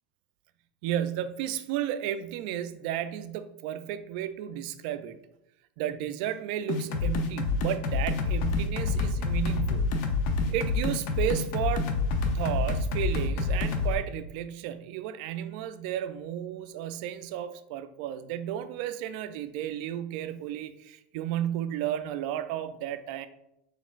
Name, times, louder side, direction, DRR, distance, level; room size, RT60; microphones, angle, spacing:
voice 1, 0.8-5.2 5.8-10.1 10.5-11.9 12.3-23.3, right 11 dB, 65° right, 0.3 m, -33 dB
sound 1, 6.7-13.9, left 3 dB, 65° left, 0.6 m, -27 dB
4.3 x 3.8 x 2.4 m
supercardioid pair, 145°, 5 cm